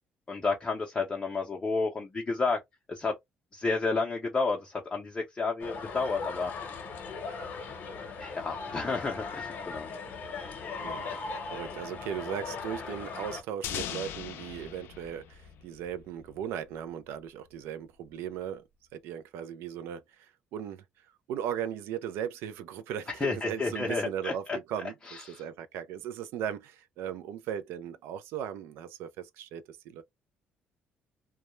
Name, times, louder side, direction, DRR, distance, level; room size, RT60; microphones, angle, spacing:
voice 1, 0.3-2.6 2.9-3.1 3.5-6.5 8.2-9.9 23.2-24.6 25.1-25.4, left 4 dB, 25° left, 0.5 m, -31 dB
sound 1, 5.6-13.4, left 4 dB, 50° left, 0.8 m, -39 dB
voice 2, 10.8-11.2 11.5-18.6 18.9-20.8 21.3-24.4 24.7-30.0, right 9 dB, 90° right, 0.3 m, -37 dB
sound 2, 13.6-16.4, left 10 dB, 80° left, 0.4 m, -39 dB
2.2 x 2.0 x 3.0 m
cardioid pair, 125°, 4 cm